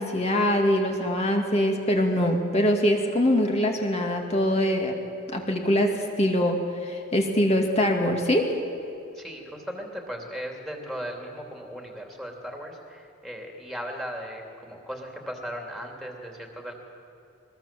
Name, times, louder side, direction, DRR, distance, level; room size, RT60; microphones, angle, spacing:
voice 1, 0.0-5.0 5.3-6.6 6.8-8.5, equal, 30° left, 2 dB, 2.4 m, -23 dB
voice 2, 9.1-16.7, equal, ahead, 1 dB, 2.9 m, -37 dB
22.0 x 21.5 x 7.5 m, 2.8 s
head